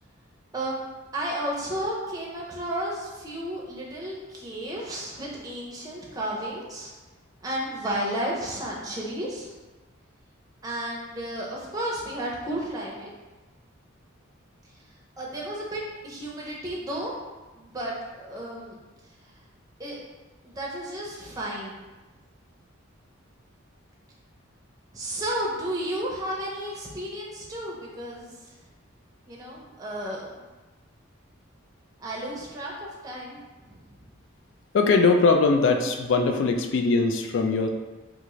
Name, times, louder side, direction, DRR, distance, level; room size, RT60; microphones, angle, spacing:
voice 1, 1.1-6.9 7.4-9.5 10.6-13.1 15.2-17.1 17.5-18.8 19.8-20.0 20.4-21.8 24.9-28.3 29.3-30.4 32.0-32.7 33.0-34.0, right 1 dB, 15° right, -3 dB, 0.5 m, -33 dB
voice 2, 34.7-37.7, left 4 dB, 60° left, 5 dB, 0.3 m, -21 dB
3.6 x 2.4 x 3.0 m, 1.2 s
head